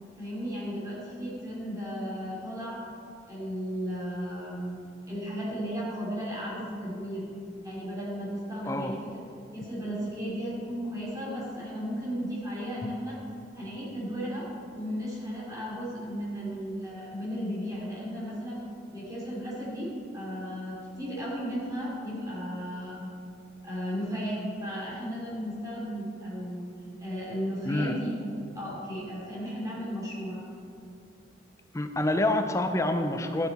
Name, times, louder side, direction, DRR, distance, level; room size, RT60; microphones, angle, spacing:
voice 1, 0.2-2.8 3.3-4.8 5.1-7.3 7.6-9.0 9.5-13.2 13.5-14.5 14.8-18.6 18.9-23.1 23.6-26.7 27.0-28.1 28.5-30.4, equal, 20° right, -7 dB, 2.6 m, -35 dB
voice 2, 8.6-9.0 27.7-28.0 31.7-33.5, left 1 dB, 15° left, 7 dB, 0.5 m, -27 dB
12.0 x 8.2 x 4.1 m, 2.5 s
head